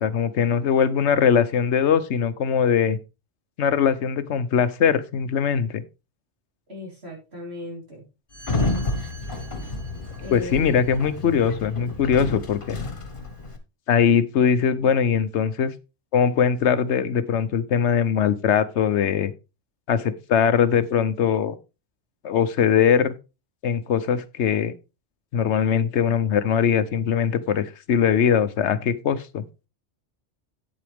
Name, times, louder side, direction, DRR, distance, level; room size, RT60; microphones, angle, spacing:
voice 1, 0.0-3.0 3.6-5.8 10.3-12.8 13.9-15.7 16.1-19.3 19.9-21.6 22.2-23.1 23.6-24.7 25.3-29.4, left 7 dB, 80° left, 13 dB, 1.1 m, -21 dB
voice 2, 6.7-8.0 10.2-10.9, left 2 dB, 65° right, -1 dB, 4.2 m, -37 dB
Sliding door, 8.3-13.6, left 2 dB, 50° left, 1.5 m, -30 dB
9.3 x 7.7 x 3.4 m, 0.28 s
omnidirectional pair, 1.2 m